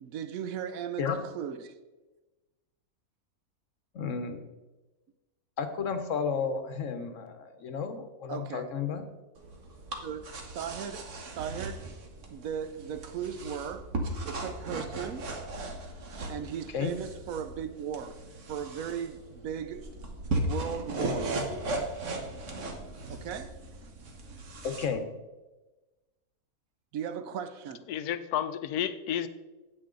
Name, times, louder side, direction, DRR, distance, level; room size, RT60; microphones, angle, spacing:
voice 1, 0.0-1.7 8.3-8.7 9.9-11.9 12.3-13.9 14.3-15.3 16.3-18.2 18.5-19.9 20.4-21.3 23.1-23.6 26.9-27.9, right 8 dB, 70° right, 1.0 m, -37 dB
voice 2, 3.9-4.4 5.6-9.0 16.7-16.9 24.6-25.0, left 6 dB, 60° left, 1.1 m, -32 dB
sound 1, 9.4-24.9, right 2 dB, 55° right, 1.4 m, -37 dB
voice 3, 27.9-29.3, left 10 dB, 85° left, 1.1 m, -31 dB
8.7 x 8.4 x 3.8 m
omnidirectional pair, 1.6 m